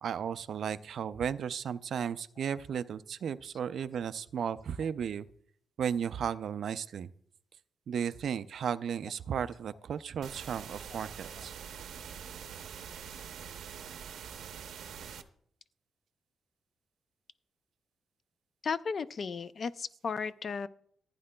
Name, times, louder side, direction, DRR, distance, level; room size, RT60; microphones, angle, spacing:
voice 1, 0.0-5.3 5.8-7.1 7.9-11.5, right 8 dB, 60° right, 14 dB, 0.3 m, -34 dB
sound 1, 10.2-15.2, right 7 dB, 90° right, 0.7 m, -44 dB
voice 2, 18.6-20.7, left 5 dB, 40° left, 15 dB, 0.3 m, -35 dB
15.0 x 9.4 x 2.2 m, 0.65 s
wide cardioid pair, 155°, 0 cm